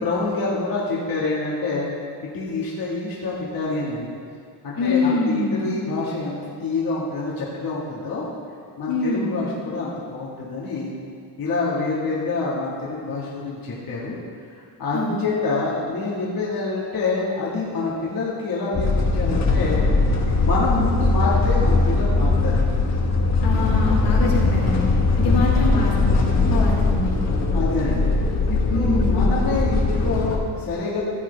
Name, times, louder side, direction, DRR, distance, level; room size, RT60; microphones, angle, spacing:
voice 1, 0.0-1.9 2.3-4.1 4.6-8.2 8.8-10.9 11.4-14.2 14.6-19.8 20.4-22.7 25.2-25.3 27.5-28.1 28.5-31.0, left 3 dB, 55° left, -6 dB, 1.9 m, -26 dB
voice 2, 4.7-5.6 8.9-9.4 14.9-15.2 23.4-24.9 25.2-27.1 28.7-29.3, left 3 dB, 85° left, -4 dB, 2.9 m, -25 dB
sound 1, 18.7-30.4, left 3 dB, 40° left, 1.4 m, -20 dB
15.0 x 7.8 x 3.5 m, 2.3 s
cardioid pair, 120°, 41 cm